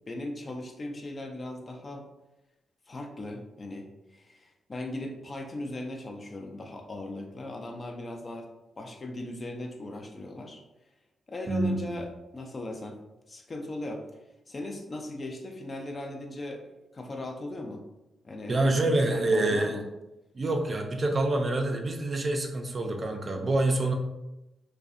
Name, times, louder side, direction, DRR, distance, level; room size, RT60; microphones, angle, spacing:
voice 1, 0.1-2.1 2.9-8.5 8.8-10.6 11.3-13.0 13.3-14.0 14.5-17.8 18.2-19.8, left 1 dB, 35° left, 2 dB, 0.4 m, -38 dB
voice 2, 11.5-12.0 18.5-19.8 20.3-23.9, right 2 dB, 40° right, 3 dB, 0.4 m, -26 dB
2.5 x 2.1 x 2.4 m, 0.95 s
cardioid pair, 80°, 0 cm